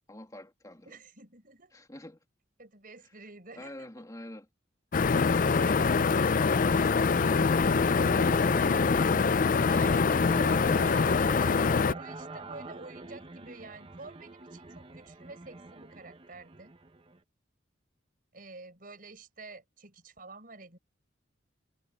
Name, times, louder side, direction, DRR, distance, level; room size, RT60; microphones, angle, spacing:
voice 1, 0.1-0.9 1.7-2.2 3.0-3.1 3.5-4.5 7.3-7.6, left 1 dB, 20° left, 2.9 m, -46 dB
voice 2, 0.8-1.7 2.6-4.1 5.9-6.9 8.3-9.3 9.7-16.7 18.3-20.8, right 3 dB, 50° right, 5.8 m, -49 dB
sound 1, 4.9-11.9, left 5 dB, 45° left, 0.4 m, -24 dB
sound 2, 6.7-17.2, right 2 dB, 30° right, 1.0 m, -43 dB
head